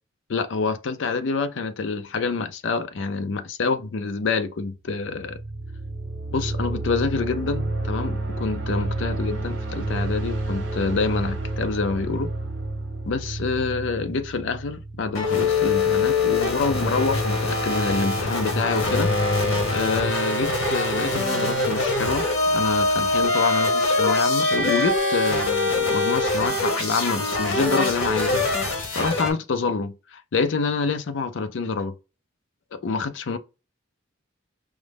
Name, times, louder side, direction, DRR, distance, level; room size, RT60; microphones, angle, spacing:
voice 1, 0.3-5.4 6.3-12.3 13.1-19.4 19.7-31.9 32.8-33.4, left 4 dB, 65° left, 0.4 m, -27 dB
sound 1, 5.0-15.8, right 2 dB, 60° right, 1.0 m, -30 dB
sound 2, 15.1-29.3, left 2 dB, 90° left, 1.1 m, -23 dB
4.9 x 2.1 x 3.3 m
head